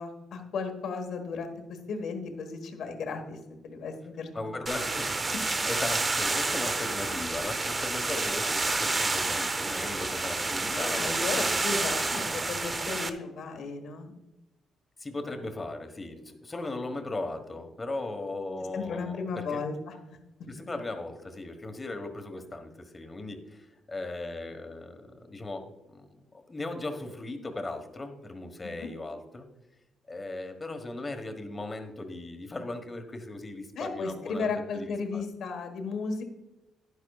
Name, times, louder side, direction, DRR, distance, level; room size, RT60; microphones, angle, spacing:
voice 1, 0.0-3.4 3.6-4.3 10.7-14.1 18.7-19.9 28.8-28.9 33.8-36.2, left 4 dB, 70° left, 5 dB, 1.4 m, -34 dB
voice 2, 4.3-5.3 5.7-12.0 15.0-19.6 20.5-29.4 30.1-35.2, left 2 dB, 25° left, 6 dB, 1.3 m, -38 dB
sound 1, 4.7-13.1, right 3 dB, 25° right, 0.7 m, -29 dB
11.0 x 10.5 x 2.4 m, 0.98 s
cardioid pair, 90°, 0 cm